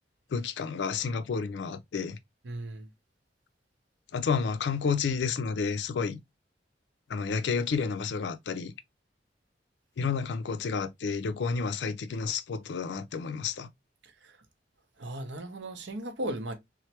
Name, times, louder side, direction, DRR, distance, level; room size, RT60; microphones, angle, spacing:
voice 1, 0.3-2.2 4.1-6.2 7.1-8.7 10.0-13.7, left 5 dB, 65° left, 0.4 m, -30 dB
voice 2, 2.4-2.9 14.0-14.4 15.0-16.5, right 1 dB, 75° right, 0.6 m, -37 dB
3.1 x 2.0 x 2.8 m
head